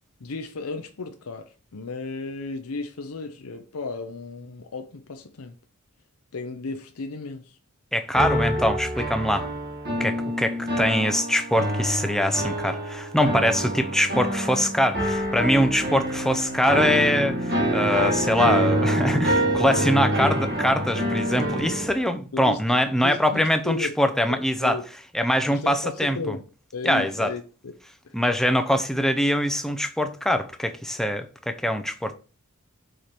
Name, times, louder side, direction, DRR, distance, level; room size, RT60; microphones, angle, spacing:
voice 1, 0.2-5.6 6.3-7.6 8.2-8.5 19.7-20.0 22.3-23.9 24.3-24.8 25.5-26.5 26.7-27.7 28.0-28.2, left 3 dB, 80° left, 0.7 m, -35 dB
voice 2, 7.9-9.5 10.0-24.8 25.1-26.4 26.8-27.3 28.1-32.1, equal, ahead, 0.5 m, -23 dB
sound 1, 8.1-21.9, equal, 45° right, 1.6 m, -26 dB
5.0 x 4.5 x 4.3 m
head